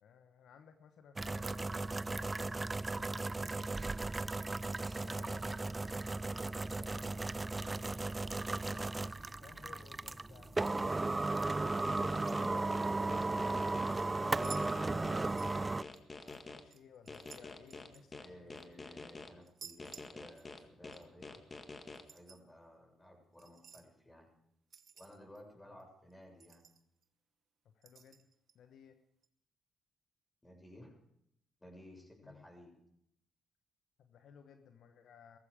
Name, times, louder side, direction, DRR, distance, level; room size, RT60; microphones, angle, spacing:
voice 1, 0.0-3.7 4.9-5.8 6.3-11.1 12.3-12.8 14.0-15.3 16.2-18.6 25.7-25.8 27.6-28.3 28.5-29.0 32.2-32.4 34.0-35.4, left 7 dB, 70° left, 7 dB, 1.1 m, -58 dB
sound 1, 1.2-15.8, right 3 dB, 25° right, 0.5 m, -36 dB
sound 2, 11.7-13.9 14.4-16.6 17.1-19.3 19.8-22.0, left 3 dB, 35° left, 1.9 m, -48 dB
sound 3, 13.4-13.5 13.9-15.1 15.4-16.4 16.7-18.7 19.4-20.7 20.9-21.1 21.9-22.4 23.4-23.9 24.7-25.4 25.8-25.9 26.1-26.2 26.4-27.0 27.8-28.5 29.2-29.3, right 7 dB, 55° right, 1.1 m, -54 dB
voice 2, 14.3-14.7 18.1-21.4 22.1-24.3 24.9-26.6 30.4-31.0 31.6-32.8, left 1 dB, 15° left, 1 dB, 7.0 m, -56 dB
18.5 x 15.0 x 5.1 m, 0.76 s
supercardioid pair, 55°, 0 cm